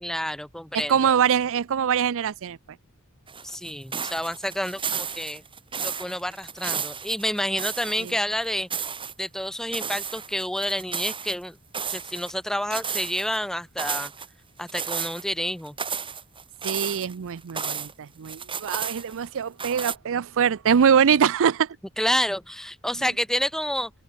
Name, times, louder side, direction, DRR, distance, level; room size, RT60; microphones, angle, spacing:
voice 1, 0.0-1.1 3.4-5.4 5.8-8.7 9.2-11.6 11.9-14.1 14.6-15.8 22.0-23.9, left 1 dB, ahead, 0.9 m, -29 dB
voice 2, 0.7-2.6 8.0-8.1 16.6-21.8, right 7 dB, 65° right, 0.5 m, -23 dB
footsteps in snow, 3.3-8.2 8.4-9.1 9.7-11.4 11.7-12.4 12.7-13.4 13.8-14.3 14.7-15.2 15.7-17.9 18.2-19.3 19.6-20.0, right 6 dB, 25° right, 3.9 m, -32 dB
open air
head